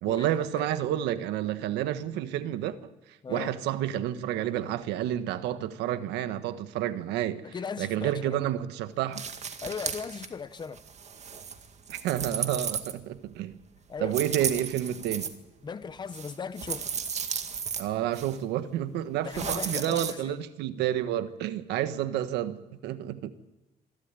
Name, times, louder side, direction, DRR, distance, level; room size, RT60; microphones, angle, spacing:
voice 1, 0.0-2.9 3.3-7.4 7.8-9.2 11.9-13.6 14.0-15.3 17.8-23.3, right 12 dB, 90° right, 1.4 m, -30 dB
voice 2, 7.4-8.4 9.6-10.8 13.9-14.2 15.6-16.8 19.2-20.4, left 5 dB, 25° left, 0.9 m, -37 dB
Picking loose change in pocket, 9.1-10.3 10.6-13.3 14.1-15.3 16.1-17.8 18.1-18.4 19.3-20.1, right 7 dB, 40° right, 2.1 m, -34 dB
26.0 x 12.5 x 9.8 m
cardioid pair, 110°, 17 cm